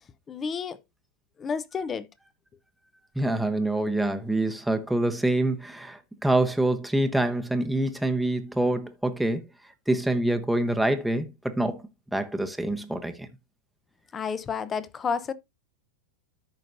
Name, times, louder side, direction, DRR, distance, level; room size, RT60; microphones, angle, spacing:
voice 1, 0.3-0.8 1.4-2.1 14.1-15.3, left 6 dB, 25° left, 0.8 m, -30 dB
voice 2, 3.1-9.4 9.9-11.8 12.1-13.3, right 1 dB, 5° right, 1.0 m, -26 dB
13.5 x 5.2 x 2.6 m
hypercardioid pair, 100°, 0 cm